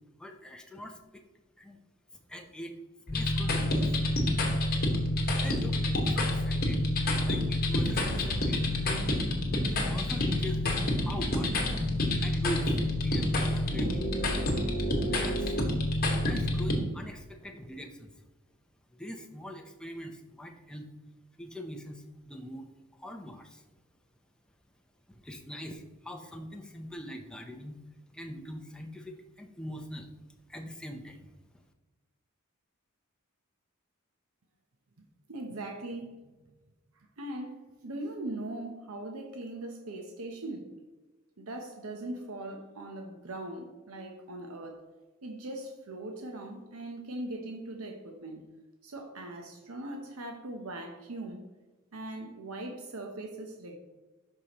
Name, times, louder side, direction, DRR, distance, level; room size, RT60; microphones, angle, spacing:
voice 1, 0.2-1.2 1.6-1.8 2.1-2.7 3.1-4.0 5.4-5.8 6.1-6.9 7.2-8.6 8.9-9.0 9.6-11.7 12.2-14.1 15.1-15.6 16.1-18.1 18.9-20.9 21.4-23.6 25.1-27.8 28.1-30.1 30.5-31.3, equal, 5° left, 0.7 m, -42 dB
sound 1, 3.1-16.8, left 1 dB, 45° left, 1.5 m, -28 dB
voice 2, 35.0-36.4 36.9-40.8 41.4-44.8 45.2-48.5 48.8-51.5 51.9-53.8, right 1 dB, 75° right, 0.9 m, -40 dB
12.0 x 4.8 x 3.0 m
head